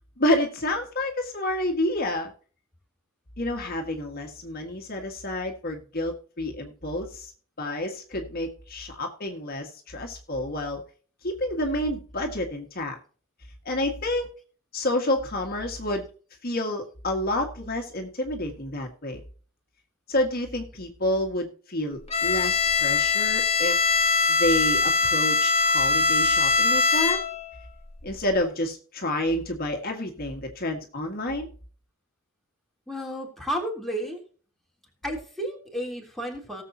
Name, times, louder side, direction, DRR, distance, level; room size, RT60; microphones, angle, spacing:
voice 1, 0.2-2.3 3.4-7.3 7.6-10.8 11.2-13.0 13.6-14.3 14.7-16.1 16.4-19.2 20.1-23.8 24.3-27.2 28.0-31.5, left 1 dB, 45° left, 3 dB, 1.8 m, -29 dB
Bowed string instrument, 22.1-27.5, left 4 dB, 30° left, 1.4 m, -22 dB
voice 2, 32.9-34.2 35.0-36.6, equal, ahead, 0 dB, 3.3 m, -32 dB
18.5 x 7.4 x 2.8 m, 0.41 s
head